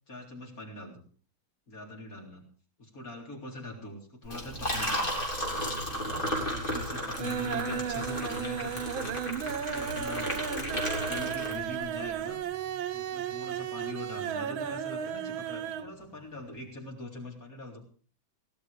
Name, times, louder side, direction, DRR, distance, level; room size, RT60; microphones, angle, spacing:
voice 1, 0.1-1.0 1.7-2.4 2.8-5.0 5.8-6.1 6.6-12.4 12.9-17.8, left 2 dB, 45° left, 0 dB, 4.3 m, -43 dB
Liquid, 4.2-11.9, equal, 25° left, 3.7 m, -34 dB
sound 1, 5.1-5.8 6.0-6.6 6.9-15.9 16.2-16.3 16.6-16.7, right 9 dB, 85° right, 1.7 m, -35 dB
18.0 x 11.5 x 5.1 m, 0.42 s
omnidirectional pair, 2.2 m